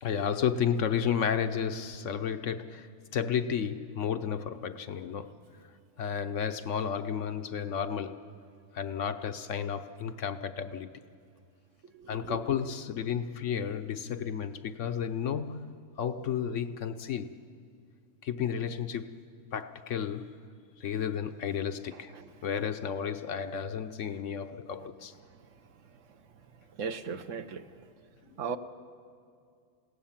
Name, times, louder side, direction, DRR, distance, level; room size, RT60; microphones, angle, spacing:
voice 1, 0.0-5.4 6.0-8.3 8.7-10.9 12.1-15.7 16.0-17.4 18.2-19.1 19.5-20.3 20.8-22.1 22.4-25.1, left 8 dB, 60° left, 1.0 m, -32 dB
voice 2, 11.9-12.4 21.9-22.2 26.8-27.7 28.4-28.6, right 6 dB, 60° right, 1.2 m, -37 dB
28.0 x 17.0 x 7.3 m
omnidirectional pair, 1.6 m